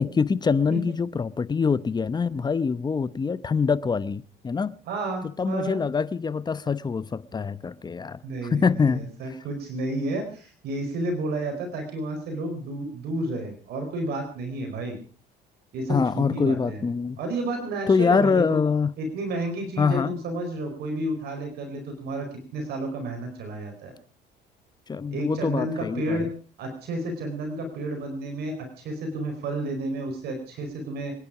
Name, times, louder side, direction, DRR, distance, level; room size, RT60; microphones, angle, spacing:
voice 1, 0.0-4.7 5.4-8.2 8.5-9.1 15.9-17.2 17.9-18.9 19.8-20.1 24.9-26.3, left 5 dB, 25° left, 0.9 m, -24 dB
voice 2, 4.9-5.8 8.2-15.0 15.7-16.8 17.2-18.6 19.0-23.9 25.1-26.3 26.6-31.1, right 2 dB, 70° right, 4.6 m, -31 dB
26.5 x 10.5 x 4.9 m
cardioid pair, 110°, 17 cm